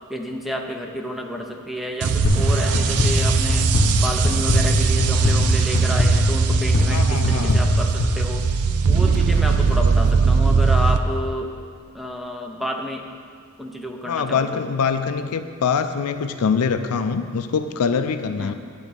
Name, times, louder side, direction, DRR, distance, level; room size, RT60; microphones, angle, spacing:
voice 1, 0.1-3.7 3.9-8.4 8.8-11.5 11.9-13.0 13.6-14.6 18.4-18.5, equal, ahead, 2 dB, 0.5 m, -30 dB
sound 1, 2.0-11.0, right 5 dB, 85° right, 0.5 m, -20 dB
sound 2, 2.2-8.9, left 1 dB, 45° left, 0.8 m, -22 dB
voice 2, 6.9-7.6 14.0-18.5, left 6 dB, 85° left, 9 dB, 0.5 m, -24 dB
9.8 x 4.0 x 7.5 m, 2.2 s
head